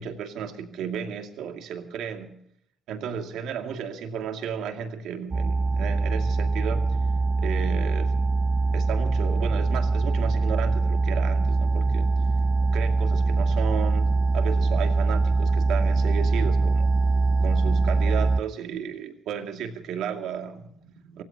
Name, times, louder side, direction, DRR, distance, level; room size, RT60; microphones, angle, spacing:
voice 1, 0.0-2.3 2.9-6.9 7.4-8.2 8.7-12.1 12.7-16.8 17.4-21.2, right 7 dB, 85° right, 5 dB, 2.4 m, -33 dB
sound 1, 5.3-18.4, right 3 dB, 30° right, 0.6 m, -23 dB
30.0 x 16.0 x 2.9 m, 0.70 s
cardioid pair, 90°, 0 cm